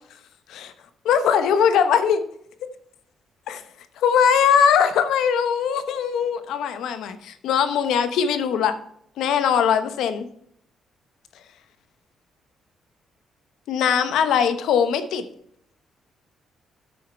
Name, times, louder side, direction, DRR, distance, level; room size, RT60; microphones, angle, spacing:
voice 1, 1.0-2.2 3.5-3.6 4.0-8.7 9.2-10.2 13.7-15.2, left 7 dB, 80° left, 10 dB, 0.9 m, -20 dB
10.0 x 6.3 x 4.5 m, 0.70 s
cardioid pair, 90°, 0 cm